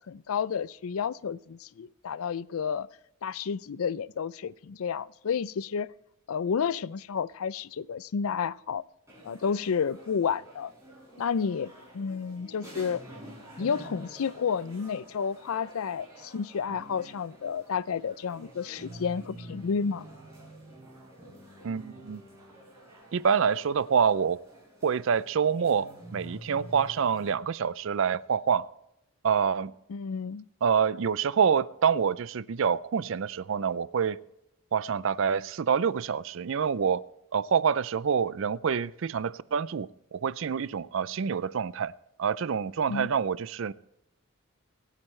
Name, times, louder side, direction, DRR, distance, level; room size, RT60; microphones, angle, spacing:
voice 1, 0.1-2.9 3.2-5.9 6.3-8.8 9.2-10.7 11.2-13.0 13.6-20.1 29.9-30.5 42.9-43.1, left 6 dB, 70° left, 19 dB, 0.4 m, -31 dB
sound 1, 9.1-27.3, right 1 dB, 15° right, 5.4 m, -48 dB
voice 2, 21.6-22.2 23.1-24.4 24.8-28.7 29.2-29.7 30.6-34.2 34.7-37.0 37.3-41.9 42.2-43.7, right 6 dB, 60° right, 19 dB, 0.4 m, -27 dB
26.0 x 9.1 x 3.2 m, 0.81 s
head